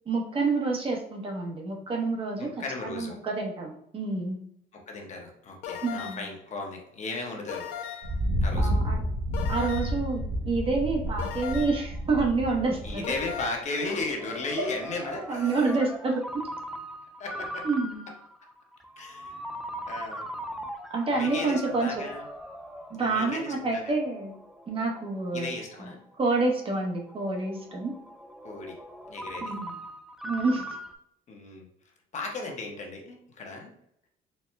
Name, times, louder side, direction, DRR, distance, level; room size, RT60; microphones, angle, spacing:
voice 1, 0.1-2.5 2.8-4.4 5.8-6.3 8.6-9.0 9.5-13.1 15.0-16.4 17.6-18.0 20.9-22.0 22.9-24.3 24.7-25.5 25.8-25.9 26.2-27.9 29.4-29.7 30.2-30.7, right 3 dB, 35° right, 0 dB, 0.8 m, -28 dB
voice 2, 2.4-3.2 4.7-7.7 8.4-8.7 12.8-15.7 17.2-17.6 19.0-19.4 19.9-20.2 21.1-22.2 22.9-23.9 25.3-26.0 28.4-28.8 29.1-29.5 31.3-31.7 32.1-33.7, left 3 dB, 45° left, 1 dB, 0.9 m, -36 dB
sound 1, 5.6-6.4 7.5-8.2 9.3-10.1 11.2-11.9 13.0-13.6, left 9 dB, 85° left, 0.5 m, -38 dB
Thunder, 8.0-13.5, equal, 70° right, 0.8 m, -30 dB
Ringtone, 11.4-30.9, equal, ahead, 0.3 m, -41 dB
4.3 x 2.1 x 3.3 m, 0.73 s
cardioid pair, 110°, 17 cm